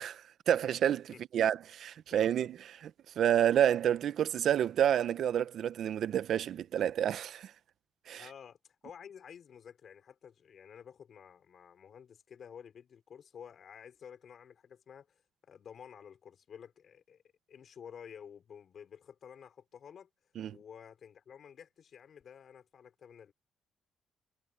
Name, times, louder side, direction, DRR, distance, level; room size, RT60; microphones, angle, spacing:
voice 1, 0.0-2.9 3.2-7.5 8.1-8.2 20.4-20.5, right 10 dB, 70° right, 0.9 m, -29 dB
voice 2, 1.1-1.4 2.1-2.5 8.1-17.2 17.5-20.1 20.5-23.3, left 7 dB, 55° left, 4.7 m, -52 dB
cardioid pair, 90°, 0 cm